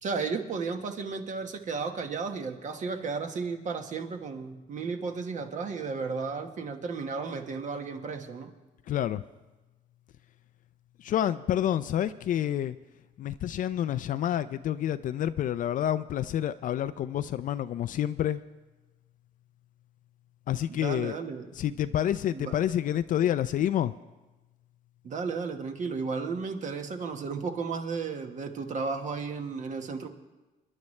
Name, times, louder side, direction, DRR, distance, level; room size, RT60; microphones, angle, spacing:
voice 1, 0.0-8.5 20.7-21.5 22.3-22.5 25.0-30.1, right 4 dB, 45° right, 5 dB, 1.4 m, -34 dB
voice 2, 8.9-9.2 11.0-12.8 13.2-18.4 20.5-21.2 21.5-23.9, left 11 dB, 50° left, 12 dB, 0.4 m, -28 dB
27.5 x 11.0 x 3.3 m, 1.1 s
cardioid pair, 110°, 17 cm